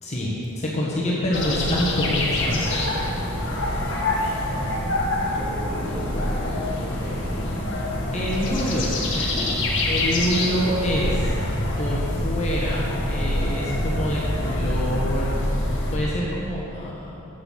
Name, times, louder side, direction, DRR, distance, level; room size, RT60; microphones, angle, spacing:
voice 1, 0.0-2.8 8.1-9.5 9.8-11.3 11.8-17.2, equal, 30° left, -5 dB, 1.4 m, -27 dB
sound 1, 1.3-16.0, left 1 dB, 55° left, 1.7 m, -25 dB
voice 2, 5.1-7.3, equal, 10° right, -8 dB, 2.5 m, -39 dB
8.1 x 7.9 x 7.4 m, 2.8 s
head